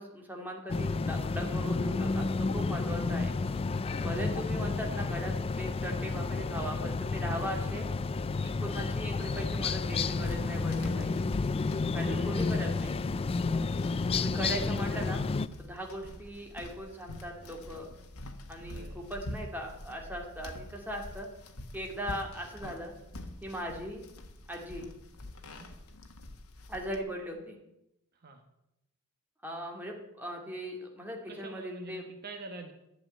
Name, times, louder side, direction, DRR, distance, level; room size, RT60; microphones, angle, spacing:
voice 1, 0.0-3.3 4.0-7.9 8.4-11.2 11.9-12.9 14.2-15.2 15.6-17.9 18.5-21.3 21.7-22.9 23.4-24.0 24.5-24.9 26.7-27.6 29.4-32.0, equal, 10° right, 1 dB, 2.3 m, -39 dB
sound 1, 0.7-15.5, left 3 dB, 25° left, 0.3 m, -31 dB
voice 2, 3.8-4.2 11.6-12.4 14.3-14.7 18.6-19.0 25.4-25.7 28.1-28.4 31.3-32.7, right 3 dB, 45° right, 5 dB, 1.3 m, -47 dB
sound 2, 10.1-27.0, left 1 dB, 70° left, 1.4 m, -46 dB
11.5 x 7.2 x 9.0 m, 0.86 s
head